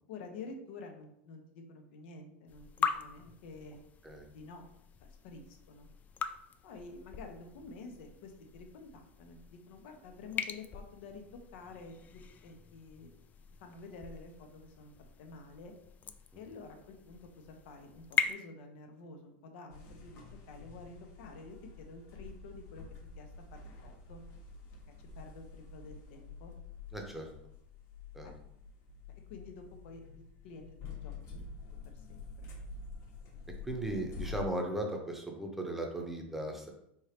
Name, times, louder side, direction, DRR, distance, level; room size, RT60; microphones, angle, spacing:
voice 1, 0.1-3.8 4.3-4.7 5.0-5.9 6.6-13.1 13.6-14.9 15.2-15.7 16.4-22.8 23.2-24.2 25.0-26.5 28.2-28.3 29.3-31.4 31.9-32.3, left 3 dB, 70° left, 4 dB, 0.9 m, -50 dB
sound 1, 2.5-18.3, left 6 dB, 25° left, 0.3 m, -41 dB
sound 2, 19.7-34.5, left 4 dB, 45° left, 1.1 m, -48 dB
voice 2, 26.9-27.3 28.1-28.3 33.7-36.7, right 1 dB, 5° right, 2 dB, 0.8 m, -37 dB
4.5 x 2.9 x 3.3 m, 0.76 s
supercardioid pair, 120°, 6 cm